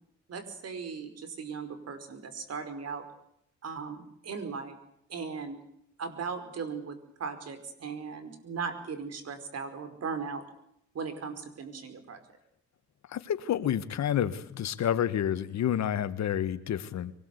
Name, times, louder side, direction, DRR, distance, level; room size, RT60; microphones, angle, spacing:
voice 1, 0.3-3.0 3.6-4.8 5.1-5.6 6.0-10.4 10.9-12.2, right 5 dB, 55° right, 9 dB, 5.0 m, -38 dB
voice 2, 13.1-17.1, left 10 dB, 65° left, 12 dB, 1.7 m, -29 dB
23.5 x 20.0 x 8.3 m, 0.74 s
cardioid pair, 90°, 30 cm